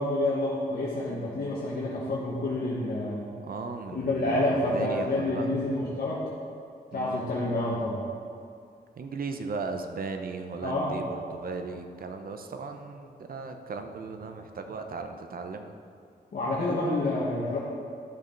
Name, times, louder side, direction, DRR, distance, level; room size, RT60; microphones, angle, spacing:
voice 1, 0.0-3.3 3.9-6.2 6.9-8.1 10.6-10.9 16.3-17.6, left 1 dB, 60° left, -7 dB, 1.6 m, -28 dB
voice 2, 3.4-5.6 6.9-7.3 9.0-15.8, right 4 dB, 60° right, 6 dB, 0.8 m, -37 dB
11.5 x 6.7 x 3.9 m, 2.4 s
wide cardioid pair, 100°, 17 cm